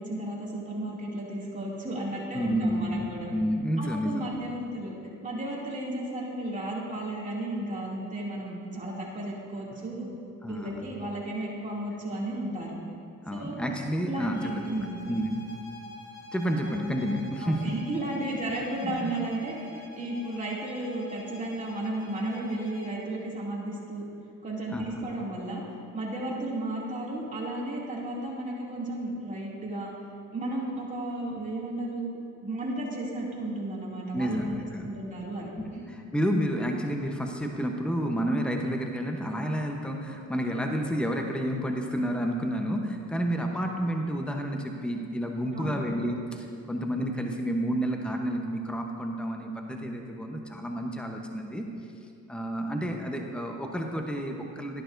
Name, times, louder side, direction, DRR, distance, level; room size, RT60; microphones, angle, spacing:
voice 1, 0.0-3.3 3.8-5.0 5.2-10.1 10.5-12.7 13.3-13.6 14.0-15.0 17.4-19.6 20.0-24.0 24.4-25.6 25.9-29.9 30.3-34.4 34.8-35.9 45.5-45.8, right 1 dB, 25° right, -5 dB, 2.6 m, -34 dB
voice 2, 2.3-4.3 10.4-10.8 13.2-14.6 15.1-15.5 16.3-17.8 18.8-19.1 24.7-25.0 34.1-34.9 35.6-51.7 52.3-54.8, equal, 5° left, 2 dB, 0.9 m, -30 dB
sound 1, 14.3-23.0, left 2 dB, 80° left, 1.3 m, -47 dB
12.0 x 11.0 x 2.6 m, 2.5 s
cardioid pair, 90°, 30 cm